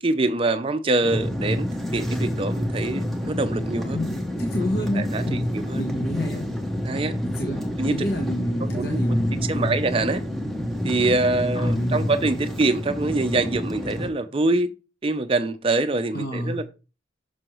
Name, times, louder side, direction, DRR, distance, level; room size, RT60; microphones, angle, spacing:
voice 1, 0.0-4.0 4.8-5.8 6.8-7.2 7.8-8.1 8.6-9.0 9.5-10.2 10.8-14.7 15.0-16.6, right 2 dB, 30° right, 0.5 m, -24 dB
sound 1, 1.0-14.1, equal, ahead, 0.7 m, -28 dB
voice 2, 4.4-5.5 5.7-6.4 7.2-7.6 7.9-9.7 11.5-12.1 16.1-16.6, left 1 dB, 55° left, 1.2 m, -27 dB
6.2 x 6.1 x 3.1 m
head